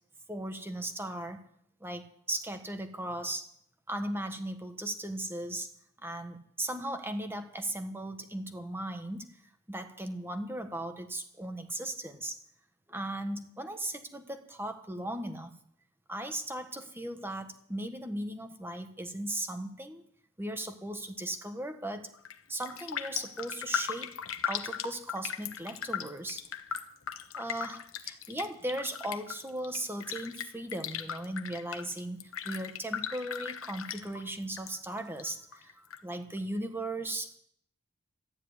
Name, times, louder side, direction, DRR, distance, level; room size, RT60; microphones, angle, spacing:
voice 1, 0.3-1.4 1.8-3.5 3.9-5.7 6.0-9.3 9.7-12.4 12.9-15.5 16.1-20.0 20.4-22.1 22.5-24.1 24.4-26.4 27.4-37.4, right 1 dB, 10° right, 6 dB, 1.5 m, -37 dB
Raindrop, 22.1-22.4 22.6-34.7 35.0-36.0 36.4-36.5, left 8 dB, 70° left, 1.2 m, -38 dB
14.0 x 10.5 x 9.8 m, 0.68 s
head